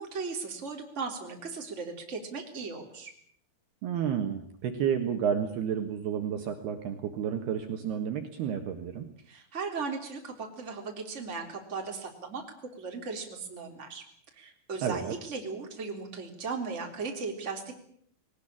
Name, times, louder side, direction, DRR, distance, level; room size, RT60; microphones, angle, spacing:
voice 1, 0.0-3.1 9.3-14.0 14.3-17.8, right 4 dB, 15° right, 3 dB, 3.0 m, -37 dB
voice 2, 3.8-9.1 14.8-15.1, right 8 dB, 65° right, 5 dB, 3.1 m, -31 dB
20.5 x 19.0 x 8.7 m, 0.63 s
omnidirectional pair, 5.6 m